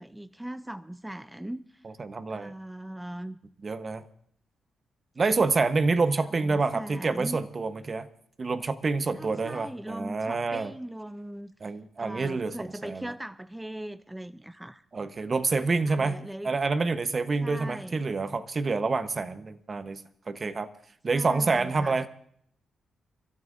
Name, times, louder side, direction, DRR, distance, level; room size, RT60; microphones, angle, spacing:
voice 1, 0.0-1.8 2.3-3.4 6.4-7.4 9.2-11.5 12.0-14.8 15.9-16.5 17.4-18.0 21.1-22.1, right 1 dB, 10° right, 13 dB, 0.5 m, -39 dB
voice 2, 1.8-2.5 3.6-4.0 5.2-8.1 8.4-10.7 11.6-13.1 14.9-20.0 20.3-20.7 21.0-22.1, right 3 dB, 45° right, 12 dB, 1.0 m, -27 dB
29.5 x 12.5 x 2.6 m, 0.65 s
supercardioid pair, 50°, 0 cm